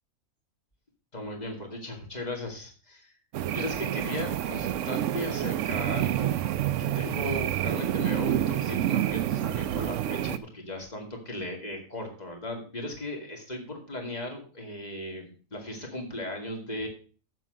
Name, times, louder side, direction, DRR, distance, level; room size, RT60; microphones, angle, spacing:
voice 1, 1.1-3.1 3.5-6.4 6.8-16.9, left 1 dB, 30° left, 2 dB, 2.4 m, -37 dB
sound 1, 3.3-10.4, right 12 dB, 65° right, 0.9 m, -28 dB
7.7 x 7.4 x 6.5 m, 0.40 s
omnidirectional pair, 1.5 m